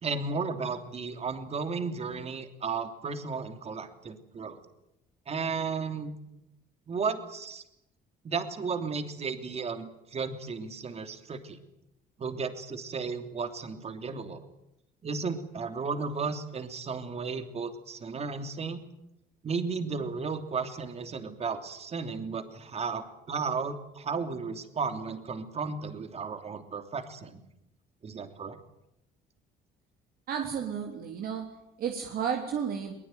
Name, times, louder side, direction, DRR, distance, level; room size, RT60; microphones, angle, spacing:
voice 1, 0.0-4.6 5.3-6.1 6.9-7.6 8.2-11.6 12.2-14.4 15.0-18.8 19.4-27.4 28.0-28.6, right 5 dB, 40° right, 8 dB, 3.1 m, -34 dB
voice 2, 30.3-32.9, right 7 dB, 60° right, 3 dB, 3.4 m, -33 dB
22.0 x 21.0 x 9.3 m, 0.85 s
cardioid pair, 110°, 17 cm